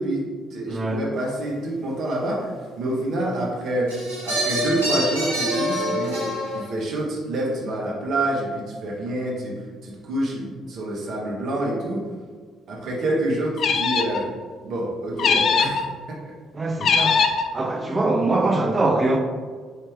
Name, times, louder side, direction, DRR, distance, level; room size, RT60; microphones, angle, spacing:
voice 1, 0.0-3.9 4.2-9.5 9.8-12.0 12.7-14.3 14.6-15.8 16.1-16.3, right 1 dB, 50° right, 1.1 m, -27 dB
voice 2, 0.7-1.0 15.3-15.5 16.5-17.3 17.5-19.2, right 2 dB, 25° right, 0.6 m, -23 dB
sound 1, 3.9-6.7, equal, 85° right, 1.1 m, -26 dB
sound 2, 13.6-14.2 15.2-15.9 16.8-17.5, left 5 dB, 45° left, 0.3 m, -20 dB
4.7 x 2.8 x 3.5 m
figure-of-eight pair, 45°, 0 cm